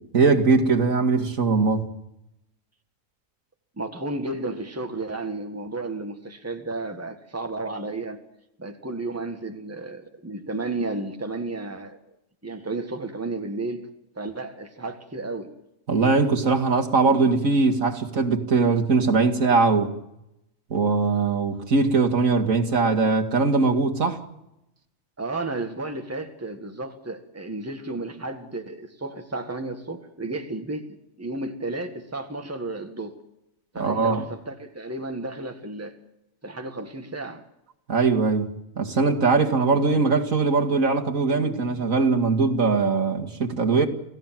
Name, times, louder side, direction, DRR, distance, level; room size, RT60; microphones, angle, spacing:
voice 1, 0.1-1.9 15.9-19.9 20.7-24.2 33.8-34.2 37.9-43.9, right 4 dB, 80° right, 2.6 m, -21 dB
voice 2, 3.8-8.2 8.6-12.0 12.4-13.8 14.1-15.5 25.2-33.2 33.7-36.0 36.4-37.4, right 2 dB, 10° right, 1.7 m, -33 dB
28.0 x 16.0 x 7.6 m
omnidirectional pair, 1.4 m